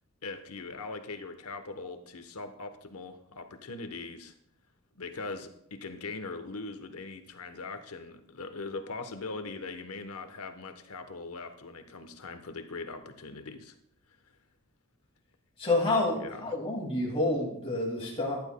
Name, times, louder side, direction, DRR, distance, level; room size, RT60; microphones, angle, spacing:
voice 1, 0.2-4.3 4.9-13.7 16.2-16.6, left 3 dB, 90° left, 8 dB, 1.0 m, -41 dB
voice 2, 15.6-18.4, left 2 dB, 25° left, -2 dB, 2.2 m, -28 dB
14.5 x 10.5 x 2.2 m, 0.75 s
head